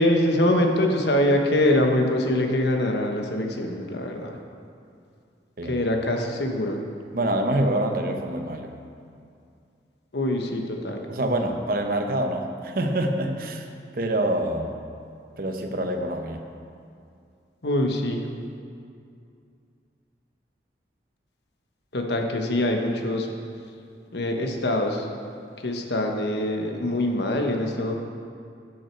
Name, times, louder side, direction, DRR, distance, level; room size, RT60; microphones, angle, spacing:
voice 1, 0.0-4.4 5.6-6.8 10.1-11.0 17.6-18.2 21.9-23.3 24.1-25.1 25.6-28.0, left 1 dB, 70° left, 3 dB, 1.1 m, -24 dB
voice 2, 7.1-8.7 11.1-13.7 13.9-14.8 15.4-16.4, right 1 dB, 50° right, 4 dB, 0.8 m, -26 dB
13.5 x 6.4 x 4.6 m, 2.4 s
head